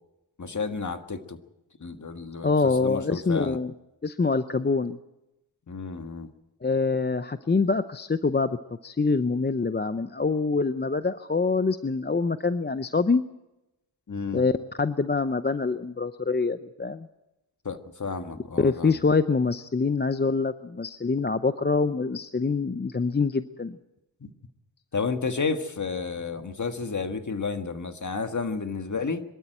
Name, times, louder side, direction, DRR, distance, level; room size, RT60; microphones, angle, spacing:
voice 1, 0.4-1.4 1.8-3.6 5.7-6.3 14.1-14.4 17.6-19.0 24.2-24.3 24.9-29.2, left 4 dB, 40° left, 7 dB, 1.7 m, -31 dB
voice 2, 2.4-3.7 4.0-5.0 6.6-8.6 8.8-13.2 14.3-14.5 14.8-17.1 18.6-23.8, left 4 dB, 25° left, 11 dB, 0.6 m, -25 dB
23.5 x 13.0 x 9.0 m, 0.93 s
wide cardioid pair, 80°, 45 cm